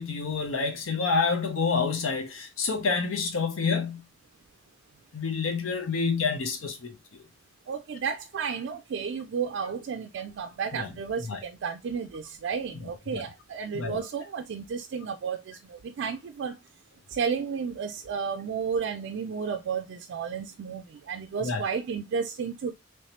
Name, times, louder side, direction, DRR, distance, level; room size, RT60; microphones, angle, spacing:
voice 1, 0.0-4.0 5.1-7.2 10.7-10.9 11.3-11.4 13.1-13.2 13.7-14.0 21.4-21.6, left 4 dB, 80° left, 0.7 m, -28 dB
voice 2, 7.7-16.6 17.1-22.7, right 6 dB, 60° right, 0.4 m, -32 dB
3.2 x 3.1 x 2.8 m
head